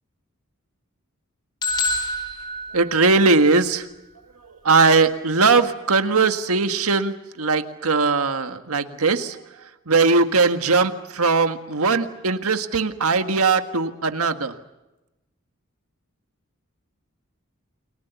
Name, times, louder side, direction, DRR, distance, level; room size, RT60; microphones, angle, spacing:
sound 1, 1.6-3.5, left 1 dB, 20° left, 4.0 m, -27 dB
voice 1, 2.7-3.8 4.6-9.4 9.9-14.5, right 4 dB, 85° right, 7 dB, 1.7 m, -19 dB
30.0 x 22.5 x 7.0 m, 0.98 s
head